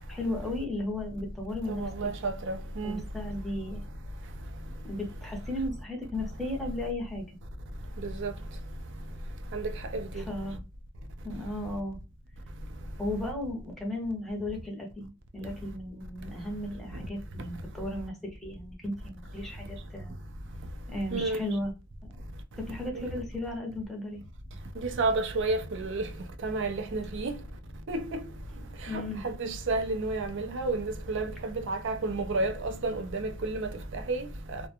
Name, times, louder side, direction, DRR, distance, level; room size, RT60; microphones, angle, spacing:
voice 1, 0.1-1.9 2.8-3.8 4.8-7.4 10.1-10.6 11.2-12.0 13.0-20.1 20.9-21.7 22.6-24.2 28.9-29.3, left 1 dB, ahead, 0.6 m, -35 dB
voice 2, 1.7-3.0 8.0-8.3 9.5-10.2 21.1-21.4 22.9-23.0 24.8-26.1 26.4-27.3 27.9-28.2 28.9-34.6, right 3 dB, 55° right, 0.4 m, -31 dB
2.4 x 2.1 x 2.7 m
head